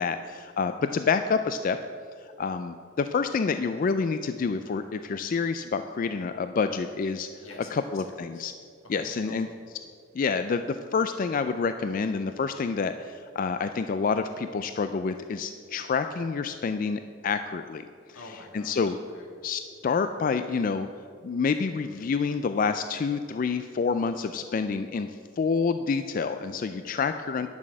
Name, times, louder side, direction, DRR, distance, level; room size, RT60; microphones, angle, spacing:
voice 1, 0.0-1.8 2.2-7.3 7.7-8.5 8.9-9.5 10.1-17.9 18.5-19.0 19.4-20.9 21.2-27.5, left 5 dB, 40° left, 9 dB, 0.3 m, -28 dB
voice 2, 7.4-8.5 8.9-9.6 18.1-19.3, left 2 dB, 80° left, 1 dB, 1.9 m, -47 dB
11.0 x 6.2 x 7.6 m, 2.3 s
head